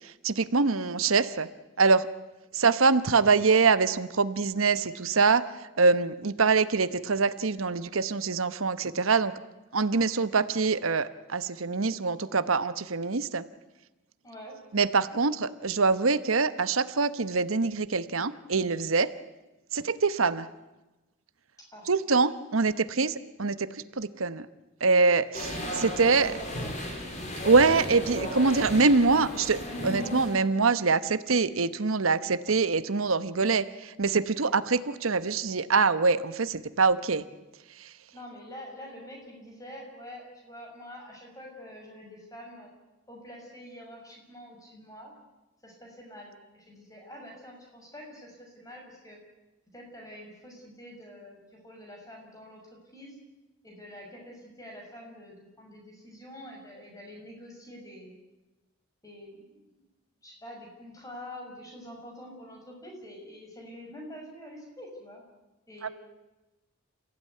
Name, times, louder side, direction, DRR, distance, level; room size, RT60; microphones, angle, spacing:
voice 1, 0.2-1.5 1.8-2.1 2.5-5.5 5.8-9.3 9.7-13.5 14.7-19.1 19.7-20.5 21.9-24.5 24.8-26.3 27.4-37.2 37.8-37.9, right 4 dB, 90° right, 13 dB, 1.0 m, -24 dB
voice 2, 14.2-14.6 21.7-21.9 25.6-26.0 26.3-26.7 38.1-42.7 43.1-45.1 45.6-49.2 49.7-52.6 52.9-53.2 53.6-58.1 59.0-59.8 60.2-65.2 65.7-65.9, equal, 15° left, 0 dB, 6.6 m, -46 dB
sound 1, 25.3-30.4, equal, 35° left, 4.5 m, -35 dB
28.0 x 16.0 x 9.6 m, 1.1 s
head